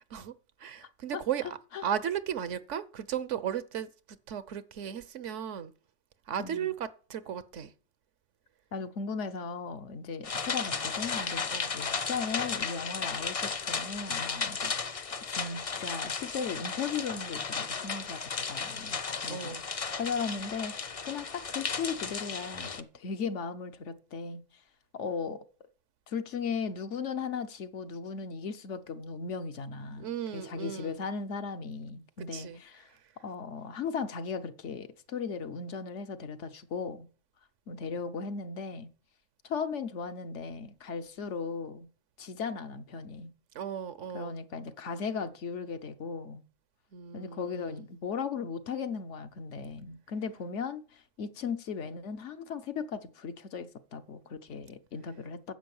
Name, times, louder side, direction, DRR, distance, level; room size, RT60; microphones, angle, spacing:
voice 1, 0.6-3.9 4.3-5.7 6.3-7.7 11.5-11.7 19.3-19.6 30.0-31.0 32.2-32.6 43.5-44.4 46.9-47.9, right 9 dB, 80° right, 1.1 m, -36 dB
voice 2, 6.4-6.7 8.7-14.7 15.3-19.6 20.0-20.7 21.0-24.4 24.9-25.4 26.1-32.9 33.2-37.1 37.7-38.9 39.4-41.9 42.2-43.3 44.1-46.4 47.1-55.5, left 5 dB, 75° left, 1.2 m, -37 dB
sound 1, 10.2-22.8, left 5 dB, 40° left, 0.6 m, -34 dB
10.0 x 7.5 x 7.1 m
omnidirectional pair, 1.2 m